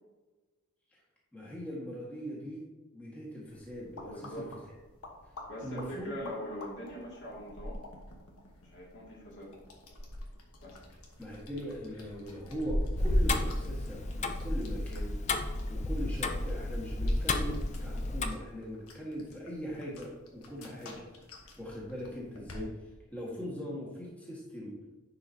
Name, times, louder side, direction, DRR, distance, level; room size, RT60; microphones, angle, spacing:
voice 1, 1.3-2.6 2.9-4.4 5.6-6.1 11.2-15.2 15.7-21.1 21.6-22.7 23.1-24.7, equal, 5° left, -6 dB, 1.6 m, -40 dB
sound 1, 3.5-22.6, left 1 dB, 80° left, 1.3 m, -40 dB
voice 2, 4.0-4.5 5.5-7.8 8.6-9.5 10.6-10.8, equal, 55° left, -3 dB, 2.3 m, -42 dB
Tick-tock, 13.0-18.3, left 2 dB, 30° left, 0.5 m, -33 dB
10.5 x 4.9 x 2.8 m, 1.2 s
head